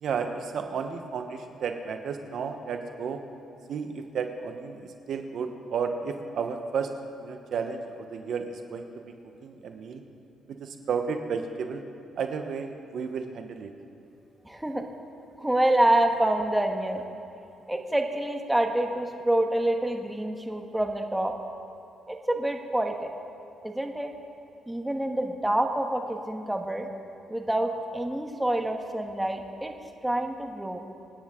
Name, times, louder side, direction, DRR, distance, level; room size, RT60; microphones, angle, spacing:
voice 1, 0.0-3.2 3.7-6.9 7.2-9.0 9.4-10.0 10.5-11.8 12.2-13.7, right 6 dB, 65° right, 6 dB, 1.0 m, -32 dB
voice 2, 14.4-14.8 15.4-17.0 17.7-21.3 22.1-23.1 23.6-24.1 24.7-26.9 27.3-29.7 30.0-30.8, right 1 dB, 5° right, 3 dB, 1.3 m, -27 dB
26.5 x 9.5 x 3.7 m, 2.8 s
cardioid pair, 90°, 0 cm